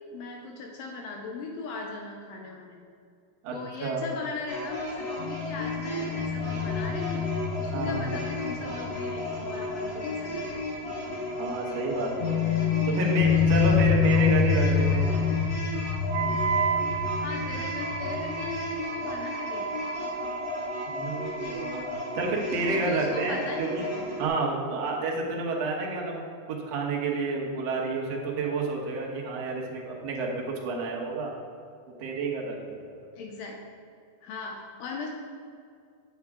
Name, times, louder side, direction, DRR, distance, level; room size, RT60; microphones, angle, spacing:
voice 1, 0.1-2.9 3.5-7.3 7.6-10.6 12.8-13.0 17.2-20.0 22.7-24.1 33.2-33.6 34.2-35.1, left 4 dB, 80° left, 1 dB, 2.3 m, -39 dB
voice 2, 3.8-4.1 7.7-8.2 11.4-12.5 12.9-15.2 20.9-21.9 22.1-23.9 24.2-30.3 30.6-31.3 32.0-33.1, right 3 dB, 65° right, -1 dB, 1.7 m, -30 dB
sound 1, 4.5-24.3, left 1 dB, 40° left, 0.8 m, -35 dB
sound 2, 5.2-10.6 10.9-11.0 12.2-18.8, left 6 dB, 60° left, 2.1 m, -27 dB
Wind instrument woodwind instrument, 16.1-22.2, right 6 dB, 80° right, 2.4 m, -33 dB
8.5 x 8.4 x 3.6 m, 2.3 s
omnidirectional pair, 4.4 m